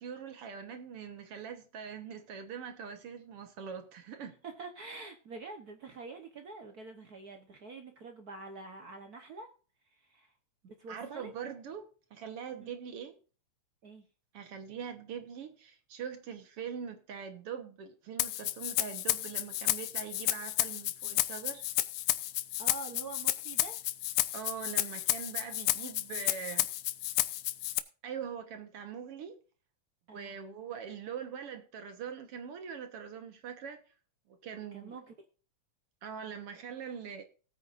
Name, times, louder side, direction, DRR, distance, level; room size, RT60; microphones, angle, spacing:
voice 1, 0.0-4.4 10.9-13.2 14.3-21.6 24.3-26.7 28.0-29.4 30.1-33.8 34.3-35.0 36.0-37.2, right 7 dB, 60° right, 7 dB, 2.0 m, -42 dB
voice 2, 4.4-9.5 9.9-10.3 10.6-11.3 12.6-12.7 13.8-14.0 22.6-23.8 30.1-30.4 34.7-35.1, right 3 dB, 75° right, 5 dB, 0.8 m, -46 dB
Rattle (instrument), 18.2-27.8, left 16 dB, 85° left, 2.1 m, -31 dB
17.5 x 9.0 x 2.6 m, 0.37 s
omnidirectional pair, 3.3 m